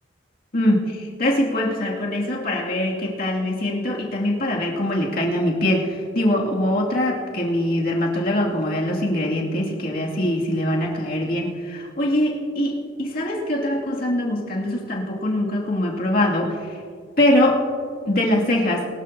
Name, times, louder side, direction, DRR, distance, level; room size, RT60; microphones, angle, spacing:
voice 1, 0.5-16.8 17.2-17.6 18.1-18.9, left 1 dB, 55° left, -3 dB, 2.4 m, -23 dB
22.5 x 13.0 x 2.8 m, 2.2 s
head